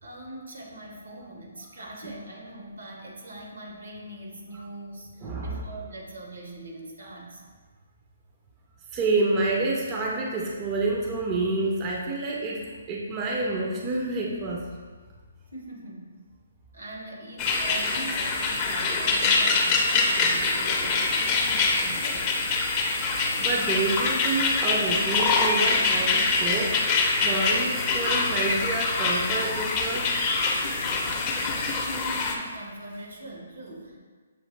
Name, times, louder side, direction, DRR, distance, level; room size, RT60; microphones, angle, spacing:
voice 1, 0.0-7.4 15.5-16.1 16.7-22.4 31.8-34.0, right 2 dB, 80° right, -1 dB, 1.2 m, -41 dB
voice 2, 5.2-5.6 8.9-14.6 23.4-26.8 27.2-30.1, right 3 dB, 25° right, -2 dB, 0.5 m, -28 dB
sound 1, 17.4-32.4, left 3 dB, 25° left, 0.5 m, -24 dB
6.5 x 2.5 x 3.2 m, 1.5 s
hypercardioid pair, 150°, 0 cm